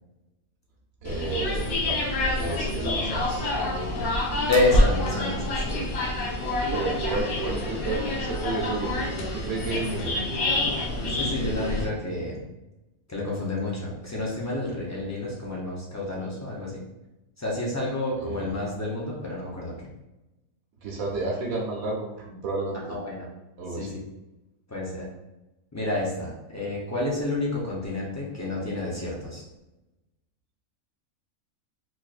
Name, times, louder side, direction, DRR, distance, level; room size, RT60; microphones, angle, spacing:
sound 1, 1.0-11.8, left 1 dB, 85° left, 1.2 m, -27 dB
voice 1, 1.0-2.0 2.3-3.5 6.7-10.1 18.2-18.6 20.8-22.8 23.6-23.9, right 3 dB, 80° right, -3 dB, 1.2 m, -31 dB
voice 2, 4.5-5.8 6.1-6.4 11.1-12.5 13.1-16.8 17.4-19.7 22.9-23.3 23.8-24.0 24.7-25.1 25.7-29.4, left 2 dB, 25° left, -5 dB, 0.3 m, -29 dB
4.0 x 2.9 x 2.4 m, 1.0 s
omnidirectional pair, 1.4 m